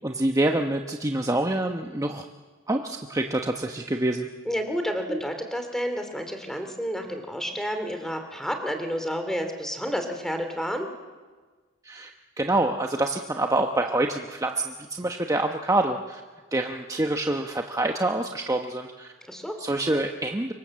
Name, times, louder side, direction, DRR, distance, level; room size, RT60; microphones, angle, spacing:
voice 1, 0.0-2.3 2.7-4.3 5.1-5.2 11.8-12.1 12.4-16.2 16.5-19.1 19.6-20.5, right 2 dB, 15° right, 3 dB, 1.0 m, -26 dB
voice 2, 4.5-10.9 19.3-19.6, equal, 5° left, 6 dB, 2.7 m, -30 dB
26.0 x 23.5 x 7.6 m, 1.4 s
head